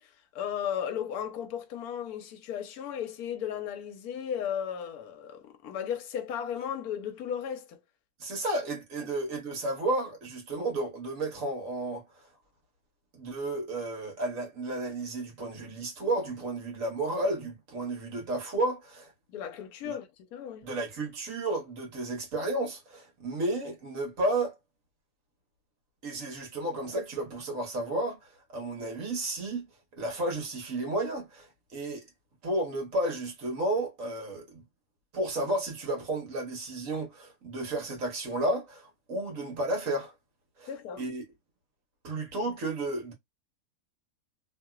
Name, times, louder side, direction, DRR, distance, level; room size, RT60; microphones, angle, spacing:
voice 1, 0.0-7.8 9.0-9.1 19.3-20.7 40.7-41.0, left 9 dB, 70° left, 1.1 m, -35 dB
voice 2, 8.2-12.0 13.1-19.1 19.8-20.0 20.6-24.5 26.0-29.6 30.0-32.0 32.4-34.6 35.1-40.1 40.6-40.7 41.0-41.2 42.0-43.1, right 2 dB, 50° right, 1.5 m, -32 dB
3.0 x 2.8 x 2.3 m
omnidirectional pair, 1.8 m